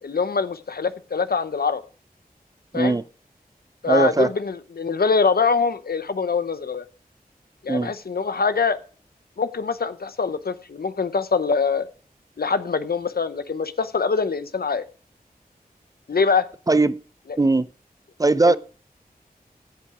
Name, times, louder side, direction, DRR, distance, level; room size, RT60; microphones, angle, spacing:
voice 1, 0.0-1.8 2.7-3.0 3.8-6.8 7.6-8.8 9.4-11.9 12.4-14.9 16.1-16.5 18.4-18.6, left 5 dB, 75° left, 0.8 m, -23 dB
voice 2, 3.9-4.3 7.7-7.9 16.7-17.0 17.4-17.7 18.2-18.6, right 3 dB, 20° right, 0.5 m, -19 dB
15.5 x 5.6 x 4.9 m
wide cardioid pair, 75°, 16 cm